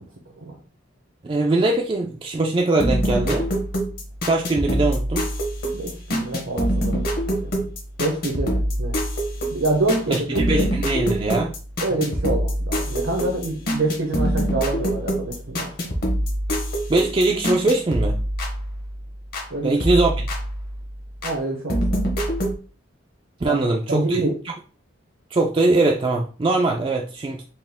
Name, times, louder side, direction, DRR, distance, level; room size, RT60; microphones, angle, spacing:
voice 1, 1.2-3.5 4.2-5.3 10.1-11.5 16.9-18.2 19.6-20.1 23.4-24.2 25.3-27.4, right 2 dB, 25° right, 0.3 m, -21 dB
sound 1, 2.8-19.5 19.8-21.4 21.7-22.5, equal, 50° left, 1.0 m, -25 dB
voice 2, 5.7-7.6 8.0-8.9 9.5-10.7 11.8-15.9 19.5-19.7 21.2-22.0 23.4-23.6 23.9-24.3, right 2 dB, 80° right, 0.9 m, -26 dB
4.2 x 2.4 x 3.6 m
head